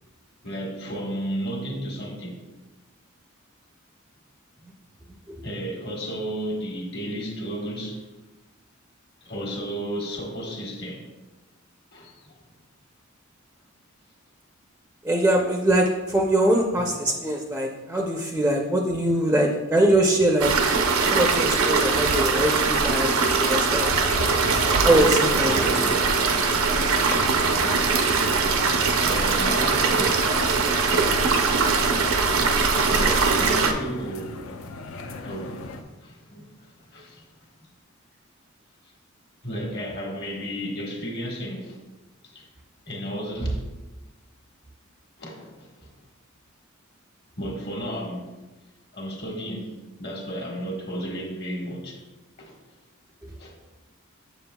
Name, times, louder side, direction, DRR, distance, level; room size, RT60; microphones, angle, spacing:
voice 1, 0.4-2.4 5.4-8.0 9.2-11.1 11.9-12.4 25.5-26.3 29.0-30.3 32.7-34.3 35.2-37.2 39.4-41.8 42.2-42.5 42.8-43.6 45.2-45.9 47.4-48.3 48.9-52.0 52.4-52.5 53.4-53.5, equal, 55° left, -1 dB, 1.4 m, -33 dB
voice 2, 15.0-20.5 21.1-23.9 24.8-25.7, right 1 dB, 10° right, 1 dB, 0.4 m, -22 dB
sound 1, 20.4-33.7, right 4 dB, 80° right, 0.6 m, -21 dB
sound 2, 23.7-35.8, left 2 dB, 80° left, 0.5 m, -37 dB
7.2 x 7.0 x 2.2 m, 1.2 s
head